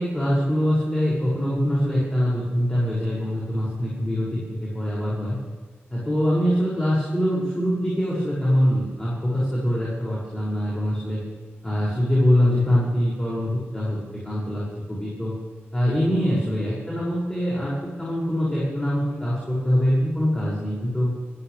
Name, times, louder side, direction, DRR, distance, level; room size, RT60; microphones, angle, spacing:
voice 1, 0.0-5.3 5.9-11.2 11.6-14.0 14.2-15.3 15.7-21.2, equal, 15° left, -7 dB, 6.9 m, -23 dB
28.5 x 13.5 x 3.6 m, 1.4 s
wide cardioid pair, 95°, 4 cm